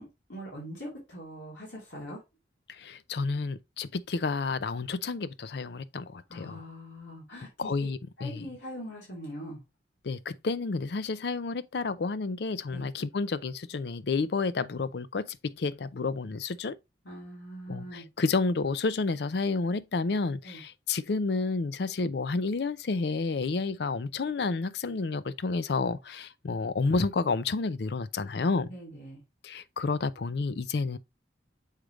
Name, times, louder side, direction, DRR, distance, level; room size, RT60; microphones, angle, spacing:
voice 1, 0.0-2.2 6.3-7.7 8.2-9.6 12.7-12.9 17.0-18.1 20.4-20.6 28.7-29.2, equal, 80° left, 2.9 m, -42 dB
voice 2, 2.7-6.6 7.6-8.5 10.0-16.7 17.7-28.7 29.4-31.0, left 4 dB, 60° left, 0.5 m, -30 dB
6.5 x 5.0 x 3.1 m
head